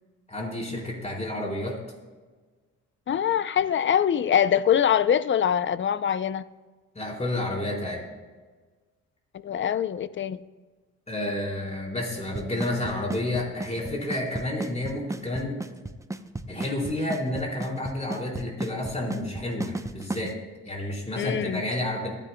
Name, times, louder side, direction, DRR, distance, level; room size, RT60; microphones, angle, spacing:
voice 1, 0.3-1.8 6.9-8.0 11.1-15.6 16.5-20.4 20.6-22.1, left 1 dB, 20° left, -2 dB, 4.2 m, -30 dB
voice 2, 3.1-6.4 9.4-10.4 21.2-21.6, left 9 dB, 40° left, 15 dB, 0.5 m, -23 dB
Drum kit / Snare drum / Bass drum, 12.4-20.3, right 2 dB, 10° right, 0.6 m, -33 dB
22.5 x 10.0 x 2.3 m, 1.4 s
cardioid pair, 90°, 30 cm